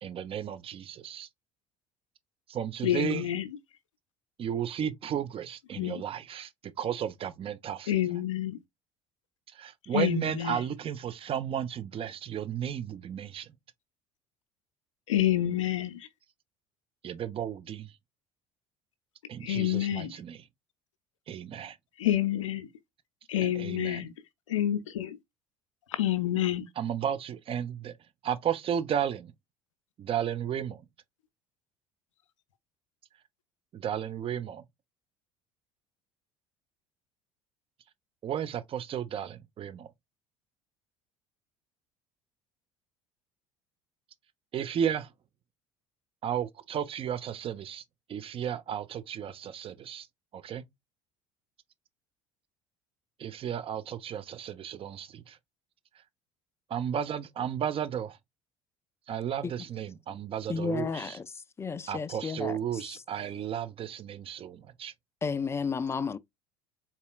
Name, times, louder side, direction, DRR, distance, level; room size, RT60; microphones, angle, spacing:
voice 1, 0.0-1.3 2.5-3.3 4.4-8.0 9.5-13.5 17.0-17.9 19.3-20.5 21.3-21.8 23.4-24.0 26.8-27.9 28.2-29.3 30.0-30.8 33.7-34.6 38.2-39.9 44.5-45.1 46.2-47.8 48.1-50.1 50.3-50.6 53.2-55.4 56.7-58.2 59.1-61.2 61.9-64.9, right 9 dB, 35° right, 0.6 m, -34 dB
voice 2, 2.8-3.4 5.8-6.0 7.9-8.6 9.9-10.6 15.1-16.0 19.4-20.1 22.0-22.7 23.3-24.1 24.5-25.2 25.9-26.6, left 12 dB, 80° left, 0.6 m, -28 dB
voice 3, 60.5-61.2 61.6-62.6 65.2-66.2, left 5 dB, 15° left, 0.4 m, -32 dB
4.1 x 3.5 x 2.3 m
figure-of-eight pair, 65°, 16 cm